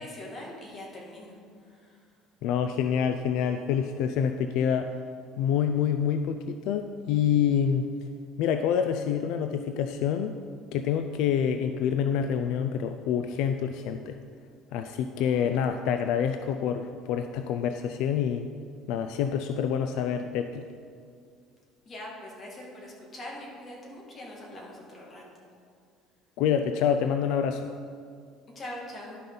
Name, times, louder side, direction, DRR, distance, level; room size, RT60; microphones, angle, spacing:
voice 1, 0.0-1.4 1.6-2.0 15.2-15.6 21.8-25.2 28.6-29.2, left 1 dB, 25° left, -3 dB, 1.9 m, -42 dB
voice 2, 2.4-4.9 5.4-7.8 8.4-10.4 10.7-14.2 14.7-18.5 18.9-20.6 26.4-27.7, left 8 dB, 70° left, 7 dB, 0.3 m, -27 dB
11.5 x 5.4 x 3.9 m, 2.2 s
cardioid pair, 140°, 0 cm